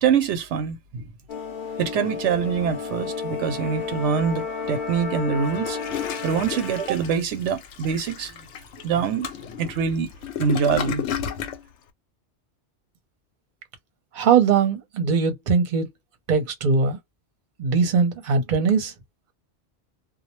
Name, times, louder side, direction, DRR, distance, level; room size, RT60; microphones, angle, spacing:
voice 1, 0.0-1.0 1.8-5.8 6.2-8.3 8.8-9.3 9.6-10.1 10.4-11.0, right 7 dB, 85° right, 0.9 m, -24 dB
sound 1, 1.3-7.1, left 5 dB, 55° left, 0.7 m, -32 dB
Toilet flush, 5.4-11.6, left 8 dB, 85° left, 0.9 m, -33 dB
voice 2, 14.1-15.9 16.3-17.0 17.6-18.9, right 5 dB, 50° right, 0.8 m, -20 dB
2.2 x 2.1 x 3.0 m
omnidirectional pair, 1.2 m